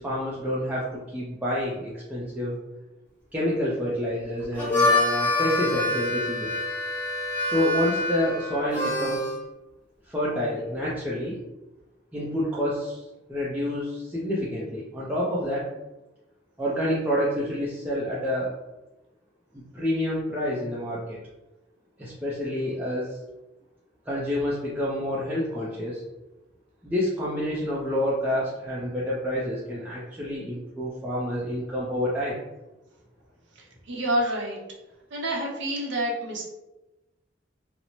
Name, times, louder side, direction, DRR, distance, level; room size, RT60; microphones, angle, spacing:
voice 1, 0.0-2.6 3.3-6.5 7.4-9.4 10.1-11.4 12.1-15.7 16.6-18.5 19.5-21.2 22.0-23.2 24.1-26.0 26.8-32.4, left 1 dB, 10° right, -7 dB, 0.4 m, -28 dB
Harmonica, 4.4-9.4, left 1 dB, 10° left, 0.7 m, -26 dB
voice 2, 33.6-34.6 35.1-36.4, right 1 dB, 65° right, -1 dB, 0.6 m, -28 dB
2.6 x 2.0 x 2.9 m, 1.0 s
head